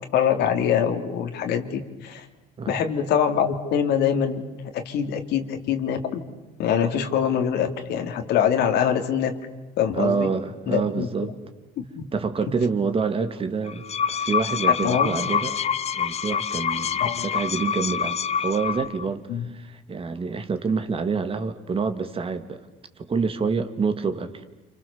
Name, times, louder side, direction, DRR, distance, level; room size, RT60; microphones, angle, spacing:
voice 1, 0.1-2.2 2.7-6.2 6.6-9.3 9.8-10.3 10.7-11.1 11.9-12.0 14.8-15.2 17.0-17.2 19.3-19.5, left 8 dB, 75° left, 6 dB, 3.1 m, -24 dB
voice 2, 9.9-11.3 12.1-15.6 15.9-22.6 23.0-24.4, right 5 dB, 35° right, 9 dB, 2.3 m, -27 dB
sound 1, 13.7-19.0, left 7 dB, 40° left, 0.9 m, -26 dB
29.5 x 28.0 x 7.2 m, 1.1 s
cardioid pair, 110°, 17 cm